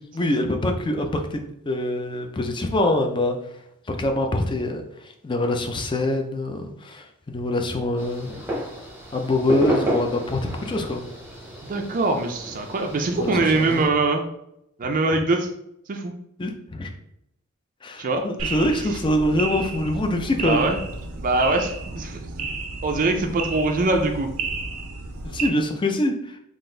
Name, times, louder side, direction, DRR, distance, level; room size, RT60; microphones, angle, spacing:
voice 1, 0.1-3.4 3.9-8.3 9.1-11.0 13.2-13.8 16.4-16.9 17.8-20.7 25.2-26.4, left 1 dB, 20° left, 5 dB, 0.4 m, -24 dB
sound 1, 8.0-13.8, equal, 10° right, 0.8 m, -31 dB
voice 2, 11.7-14.2 14.8-15.5 15.9-16.1 18.0-18.2 20.4-20.8 21.2-22.5 22.8-24.3, right 2 dB, 40° right, 3 dB, 0.4 m, -23 dB
sound 2, 18.4-25.5, right 3 dB, 85° right, 0.6 m, -32 dB
3.9 x 2.4 x 3.8 m, 0.80 s
head